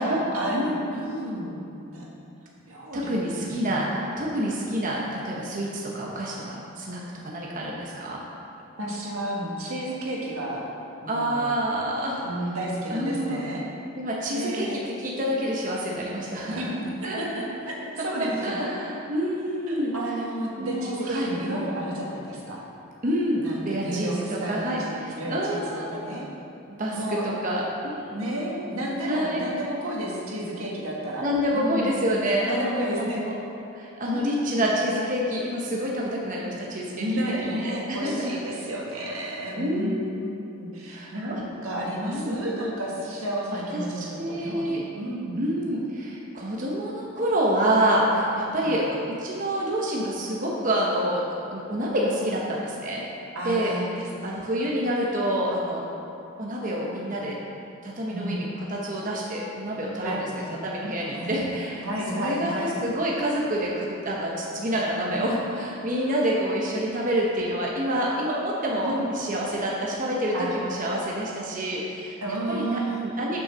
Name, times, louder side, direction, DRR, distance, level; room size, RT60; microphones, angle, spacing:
voice 1, 0.0-2.1 2.7-3.1 3.4-3.6 8.8-10.7 11.0-11.4 12.2-13.6 14.3-14.8 15.1-15.4 16.5-18.7 19.7-22.6 23.4-26.3 26.9-27.3 28.1-32.0 32.4-33.2 34.0-34.7 36.9-45.4 48.6-48.9 53.3-54.5 58.1-58.3 60.0-60.6 61.1-61.3 61.8-62.8 65.1-66.2 68.8-69.0 70.3-70.6 72.2-73.2, right 1 dB, 85° right, -3 dB, 1.7 m, -32 dB
voice 2, 2.9-8.2 11.1-12.2 12.9-13.4 14.0-14.7 15.0-16.6 17.0-17.2 18.2-19.9 20.6-21.3 23.0-25.9 26.7-28.1 29.0-29.4 31.2-33.0 33.7-37.0 37.6-38.4 39.6-40.1 40.9-41.4 42.0-42.4 43.5-44.8 45.4-51.2 51.5-53.0 53.4-53.7 54.2-55.8 56.4-57.4 57.8-60.3 60.6-73.4, equal, 40° right, -3 dB, 0.9 m, -27 dB
7.0 x 6.3 x 6.1 m, 2.7 s
head